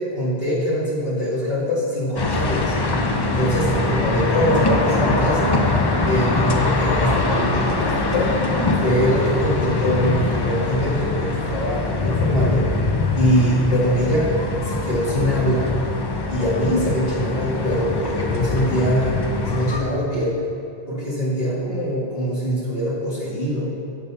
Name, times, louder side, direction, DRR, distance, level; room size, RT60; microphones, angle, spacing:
voice 1, 0.0-2.8 3.3-5.6 6.0-8.4 8.8-12.8 13.2-14.3 14.6-15.7 16.3-20.4 20.9-23.7, equal, 60° left, -6 dB, 2.0 m, -23 dB
sound 1, 2.2-19.8, left 3 dB, 35° left, 0.4 m, -23 dB
6.7 x 5.4 x 5.6 m, 2.7 s
omnidirectional pair, 1.1 m